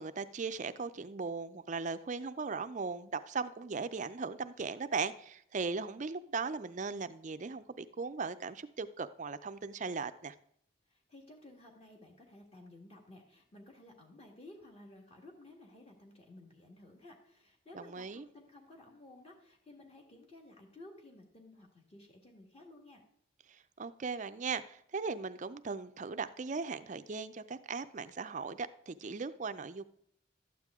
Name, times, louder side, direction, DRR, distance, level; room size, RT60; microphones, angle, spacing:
voice 1, 0.0-10.3 17.7-18.3 23.5-29.8, right 4 dB, 40° right, 12 dB, 0.4 m, -38 dB
voice 2, 10.8-23.0, left 1 dB, 30° left, 1 dB, 1.5 m, -55 dB
12.5 x 9.0 x 3.6 m, 0.69 s
head